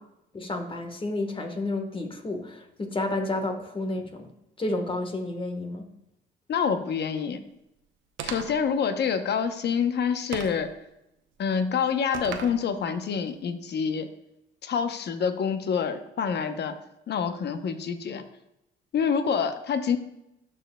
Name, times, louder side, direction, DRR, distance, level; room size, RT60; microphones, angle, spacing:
voice 1, 0.3-4.3 4.6-5.9, left 2 dB, 25° left, 5 dB, 1.3 m, -31 dB
voice 2, 6.5-7.4 8.2-10.7 11.4-14.1 14.6-16.8 17.1-18.2 18.9-20.0, left 6 dB, 60° left, 8 dB, 0.8 m, -27 dB
sound 1, 8.2-8.7 10.3-10.7 12.1-12.6, right 7 dB, 80° right, 0.7 m, -36 dB
12.0 x 4.5 x 2.2 m, 0.85 s
cardioid pair, 90°, 20 cm